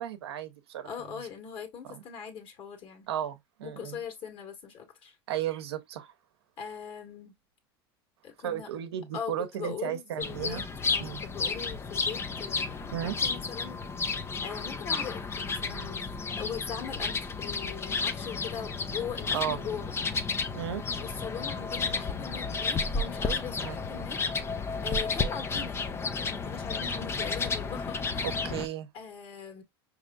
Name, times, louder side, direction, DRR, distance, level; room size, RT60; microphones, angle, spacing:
voice 1, 0.0-0.9 1.9-2.0 3.1-4.0 5.3-6.1 8.4-10.6 11.0-11.2 12.9-13.2 19.3-19.6 20.5-20.8 23.6-23.8 28.2-28.9, right 10 dB, 85° right, 0.9 m, -34 dB
voice 2, 0.8-3.1 3.6-5.2 6.6-7.4 8.2-8.7 9.1-13.8 14.4-16.0 16.4-19.9 21.0-24.4 24.8-28.4 28.9-29.6, left 7 dB, 40° left, 1.7 m, -41 dB
sound 1, 10.2-28.7, left 4 dB, 20° left, 0.5 m, -32 dB
5.1 x 3.1 x 2.4 m
supercardioid pair, 110°, 13 cm